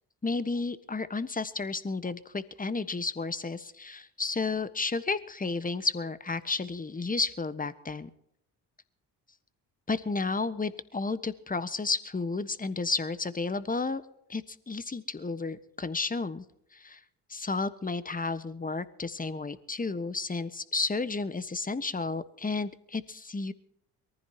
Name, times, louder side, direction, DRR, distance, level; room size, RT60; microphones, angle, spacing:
voice 1, 0.2-8.1 9.9-14.0 14.3-16.4 16.7-17.0 17.3-23.5, left 3 dB, 20° left, 13 dB, 1.4 m, -32 dB
23.0 x 15.0 x 3.0 m, 0.74 s
hypercardioid pair, 50°, 45 cm